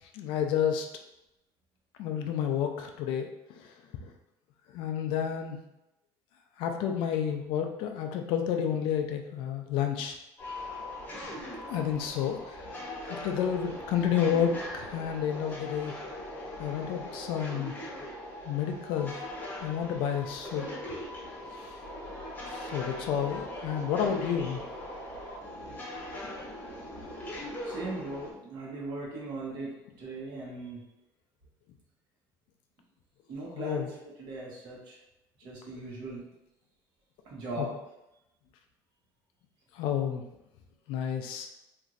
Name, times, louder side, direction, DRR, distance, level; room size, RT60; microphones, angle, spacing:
voice 1, 0.1-0.9 2.0-3.3 3.6-3.7 4.7-5.6 6.6-10.2 11.7-12.6 13.0-15.9 16.6-17.7 18.5-19.1 19.6-20.7 22.5-24.6 33.5-33.9 37.6-37.7 39.8-40.2 40.9-41.6, left 8 dB, 75° left, 4 dB, 0.3 m, -30 dB
sound 1, 10.4-28.3, left 1 dB, 20° left, 0.7 m, -40 dB
voice 2, 27.6-30.8 33.3-35.0 35.4-36.2 37.2-37.7, right 2 dB, 60° right, -3 dB, 0.9 m, -39 dB
3.0 x 2.5 x 2.5 m, 0.89 s
cardioid pair, 130°, 9 cm